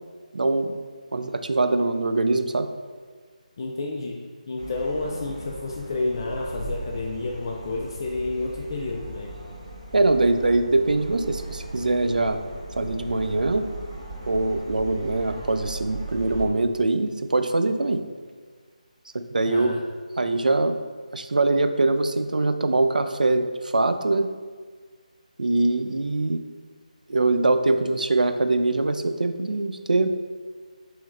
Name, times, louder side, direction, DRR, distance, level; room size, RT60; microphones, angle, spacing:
voice 1, 0.3-0.8 1.1-2.7 9.9-12.4 12.8-13.7 14.3-18.0 19.1-19.8 20.2-20.7 21.1-24.3 25.4-26.4 27.1-30.1, right 2 dB, 90° right, 8 dB, 0.4 m, -23 dB
voice 2, 3.6-9.3 19.4-19.8, left 2 dB, 30° left, -1 dB, 0.3 m, -30 dB
sound 1, 4.6-16.5, right 2 dB, 55° right, 1.2 m, -38 dB
6.8 x 3.2 x 2.4 m, 1.6 s
figure-of-eight pair, 165°, 4 cm